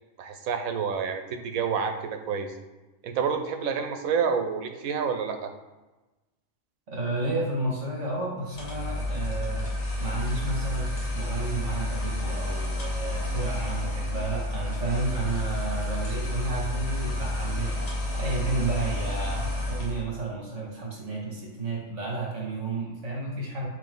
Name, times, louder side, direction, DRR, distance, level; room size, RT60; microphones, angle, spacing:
voice 1, 0.2-2.5 3.0-5.5, right 6 dB, 90° right, 6 dB, 1.1 m, -28 dB
voice 2, 6.9-9.7 10.0-23.7, right 3 dB, 60° right, -3 dB, 1.8 m, -32 dB
sound 1, 8.5-20.0, left 1 dB, 90° left, 1.8 m, -30 dB
8.6 x 3.0 x 3.8 m, 1.1 s
omnidirectional pair, 1.4 m